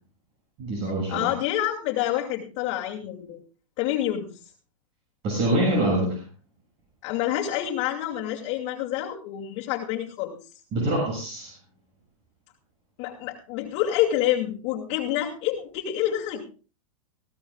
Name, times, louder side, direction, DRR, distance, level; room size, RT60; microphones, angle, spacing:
voice 1, 0.6-1.3 5.2-6.2 10.7-11.5, right 1 dB, 35° right, -1 dB, 6.9 m, -25 dB
voice 2, 1.1-3.4 3.8-4.3 7.0-10.4 13.0-16.4, left 12 dB, 40° left, -2 dB, 2.6 m, -27 dB
20.5 x 16.0 x 2.4 m, 0.37 s
hypercardioid pair, 135°, 18 cm